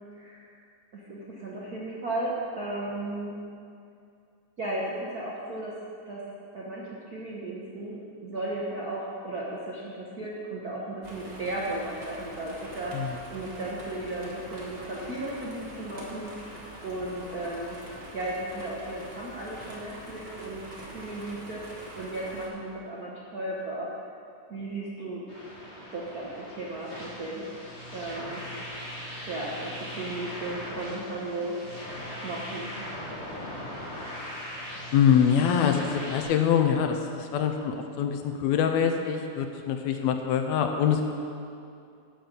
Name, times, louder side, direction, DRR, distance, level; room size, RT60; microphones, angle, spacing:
voice 1, 0.1-0.5 0.9-3.3 4.6-5.7 6.0-6.2 6.5-12.9 13.3-17.8 18.1-20.6 20.9-23.9 24.5-25.2 25.9-27.5 27.9-28.4 29.3-31.5 32.2-32.7, right 2 dB, 65° right, -5 dB, 0.9 m, -35 dB
sound 1, 11.0-22.5, right 1 dB, 30° right, 1.1 m, -44 dB
sound 2, 25.3-36.2, left 1 dB, 35° left, 2.7 m, -39 dB
voice 2, 34.9-41.1, left 8 dB, 80° left, 5 dB, 1.8 m, -24 dB
10.0 x 5.3 x 7.2 m, 2.5 s
omnidirectional pair, 3.3 m